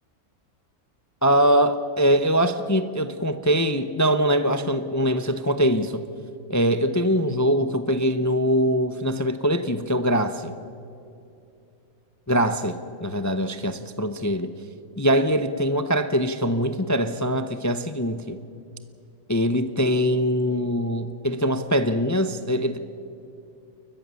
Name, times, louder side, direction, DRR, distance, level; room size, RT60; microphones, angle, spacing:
voice 1, 1.2-6.0 6.5-10.5 12.3-14.5 15.0-18.4 19.3-22.8, equal, 20° left, 10 dB, 0.5 m, -23 dB
29.5 x 14.5 x 7.0 m, 2.6 s
omnidirectional pair, 1.5 m